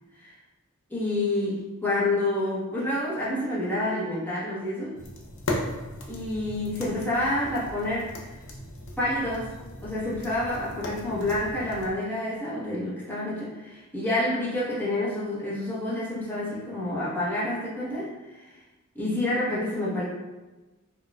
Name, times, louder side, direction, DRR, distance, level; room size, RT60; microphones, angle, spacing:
voice 1, 0.9-5.0 6.1-8.4 9.0-9.5 9.8-18.6 18.9-20.0, left 1 dB, 10° left, -8 dB, 0.9 m, -28 dB
sound 1, 4.9-11.9, left 1 dB, 60° left, 0.5 m, -37 dB
4.3 x 2.3 x 2.2 m, 1.2 s
head